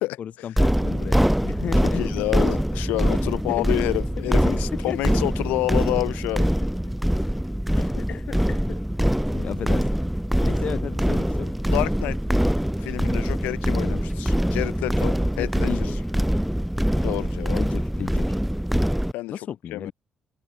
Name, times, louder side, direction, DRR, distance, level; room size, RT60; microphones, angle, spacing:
voice 1, 0.2-2.0 3.1-3.8 4.3-4.6 4.9-5.0 6.4-6.9 7.8-8.8 9.3-9.9 10.4-11.5 15.4-16.1 17.5-18.4 19.3-19.9, left 9 dB, 60° left, 4.0 m, -34 dB
sound 1, 0.6-19.1, equal, 5° right, 0.6 m, -23 dB
voice 2, 1.8-6.4 10.3-10.8 11.7-12.2 12.8-15.9 17.0-17.6 19.1-19.3 19.7-19.9, left 19 dB, 75° left, 2.6 m, -28 dB
open air
hypercardioid pair, 50°, 3 cm